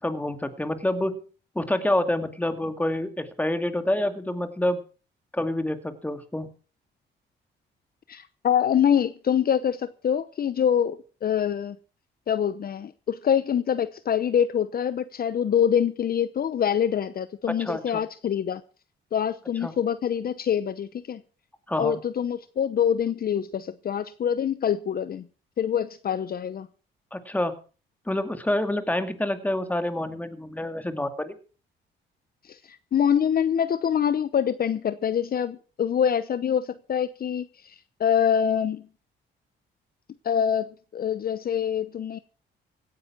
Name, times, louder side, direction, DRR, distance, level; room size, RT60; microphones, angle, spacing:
voice 1, 0.0-1.2 1.6-4.8 5.3-6.5 17.6-18.0 19.6-19.7 21.7-22.0 27.1-27.5 28.1-31.3, left 1 dB, 10° left, 2.3 m, -27 dB
voice 2, 8.1-11.8 12.3-18.6 19.1-21.2 21.8-25.3 25.6-26.7 32.4-38.8 40.2-42.2, left 8 dB, 50° left, 0.8 m, -25 dB
17.0 x 9.8 x 6.1 m
cardioid pair, 90°, 20 cm